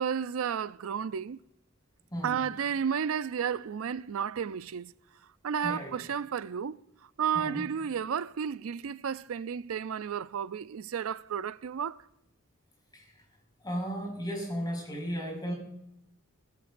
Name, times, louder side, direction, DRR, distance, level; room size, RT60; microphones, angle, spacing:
voice 1, 0.0-1.4 2.2-4.9 5.4-6.8 7.2-12.0, right 7 dB, 85° right, 0.4 m, -32 dB
voice 2, 2.1-2.4 5.6-6.0 7.3-7.7 12.9-13.2 13.6-15.5, equal, 20° left, 5.4 m, -35 dB
17.0 x 15.5 x 2.6 m
head